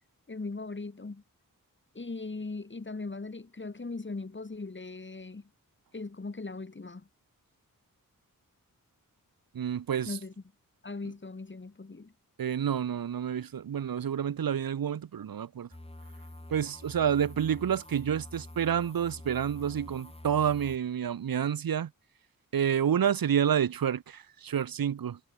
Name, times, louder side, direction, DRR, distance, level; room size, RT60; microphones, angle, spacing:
voice 1, 0.3-1.2 2.0-5.5 5.9-7.1 10.1-10.3 10.8-12.1, left 3 dB, 35° left, 1.8 m, -39 dB
voice 2, 9.5-10.1 12.4-15.7 16.5-21.9 22.5-25.2, right 8 dB, 90° right, 0.8 m, -29 dB
sound 1, 15.7-20.8, left 1 dB, 15° left, 6.7 m, -47 dB
wide cardioid pair, 70°, 34 cm